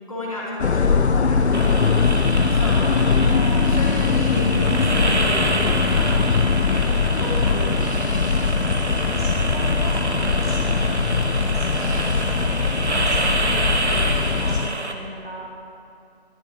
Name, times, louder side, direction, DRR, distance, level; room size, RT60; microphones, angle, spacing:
voice 1, 0.0-2.2 2.5-3.3 3.7-8.4, left 1 dB, 30° left, -5 dB, 1.9 m, -33 dB
sound 1, 0.6-14.7, left 5 dB, 75° left, 0.5 m, -21 dB
sound 2, 1.5-14.9, right 2 dB, 85° right, 1.1 m, -27 dB
voice 2, 3.2-3.9 9.5-11.0 11.7-15.5, right 1 dB, 55° right, 0 dB, 1.0 m, -38 dB
sound 3, 8.7-9.3 9.9-10.0 10.3-10.6 11.1-12.2 12.4-13.4 13.9-14.5, right 1 dB, 15° right, 1.9 m, -42 dB
20.0 x 7.1 x 2.7 m, 2.5 s
figure-of-eight pair, 175°, 33 cm